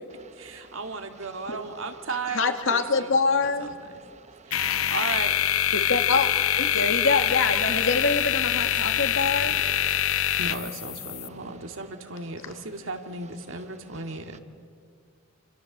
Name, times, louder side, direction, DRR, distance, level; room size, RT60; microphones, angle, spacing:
voice 1, 0.3-3.1 3.4-3.8 4.5-5.3 8.8-9.9 10.4-14.4, right 3 dB, 70° right, 5 dB, 2.2 m, -36 dB
voice 2, 2.3-3.7 5.7-6.3 6.6-9.6, left 4 dB, 65° left, 6 dB, 2.0 m, -25 dB
voice 3, 4.0-4.9 9.9-10.4, right 3 dB, 35° right, 10 dB, 1.2 m, -52 dB
sound 1, 4.5-11.3, left 11 dB, 80° left, 0.8 m, -25 dB
29.0 x 26.5 x 7.4 m, 2.1 s
head